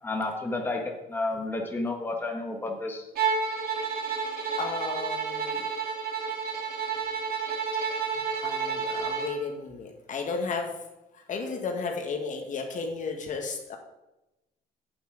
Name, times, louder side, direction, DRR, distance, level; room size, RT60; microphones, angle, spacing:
voice 1, 0.0-3.0, left 2 dB, 10° left, 1 dB, 1.5 m, -31 dB
Bowed string instrument, 3.2-9.4, right 5 dB, 65° right, 2.2 m, -30 dB
voice 2, 4.6-5.6 8.4-10.7 11.1-13.8, left 4 dB, 50° left, 3 dB, 1.7 m, -33 dB
8.6 x 8.1 x 4.9 m, 0.95 s
cardioid pair, 110°, 17 cm